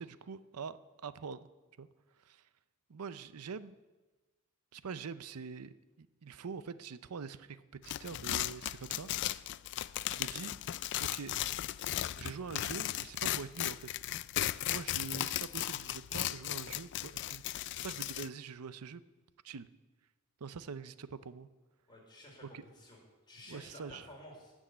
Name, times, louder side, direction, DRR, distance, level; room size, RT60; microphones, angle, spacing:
voice 1, 0.0-1.5 1.8-1.9 2.2-2.4 2.9-3.8 4.7-9.6 10.1-10.5 11.0-11.3 12.2-13.9 14.7-19.0 19.4-19.7 20.4-21.5 22.5-22.6 23.5-24.0, right 5 dB, 90° right, 14 dB, 0.6 m, -44 dB
sound 1, 7.8-18.3, left 13 dB, 55° left, 0.3 m, -36 dB
voice 2, 21.9-23.0 23.3-24.5, left 1 dB, 20° left, -2 dB, 4.2 m, -52 dB
17.5 x 6.3 x 8.1 m, 1.2 s
head